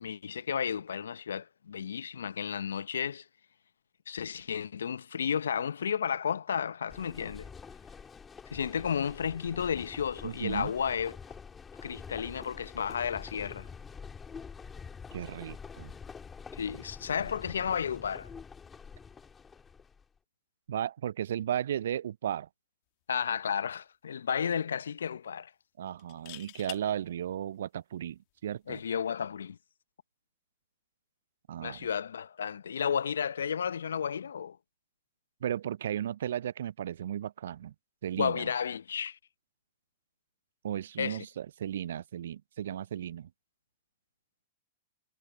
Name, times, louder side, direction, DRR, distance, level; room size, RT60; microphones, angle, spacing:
voice 1, 0.0-3.2 4.1-7.5 8.5-11.2 11.8-13.7 16.5-18.3 23.1-25.5 28.7-29.6 31.6-34.6 38.1-39.2 41.0-41.2, left 7 dB, 75° left, 0.8 m, -32 dB
sound 1, 6.9-20.0, left 6 dB, 15° left, 3.5 m, -47 dB
voice 2, 10.2-10.7 15.1-15.9 20.7-22.5 25.8-28.8 31.5-31.9 35.4-37.7 38.0-38.5 40.6-43.3, right 10 dB, 65° right, 0.3 m, -35 dB
sound 2, 23.2-23.4 23.7-23.8 26.0-26.8 28.6-28.9, left 28 dB, 50° left, 2.1 m, -45 dB
figure-of-eight pair, 105°, 0 cm